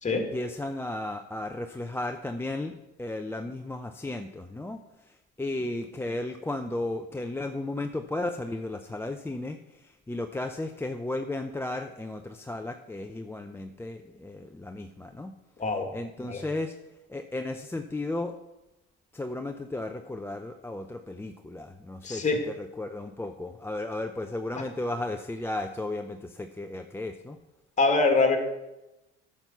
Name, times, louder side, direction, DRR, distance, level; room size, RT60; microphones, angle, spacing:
voice 1, 0.1-15.3 15.9-16.8 17.1-18.4 19.1-27.4, left 2 dB, 10° left, 5 dB, 0.5 m, -34 dB
voice 2, 22.0-22.4 27.8-28.4, left 3 dB, 25° left, 4 dB, 2.0 m, -23 dB
8.9 x 6.1 x 5.6 m, 0.96 s
hypercardioid pair, 75°, 31 cm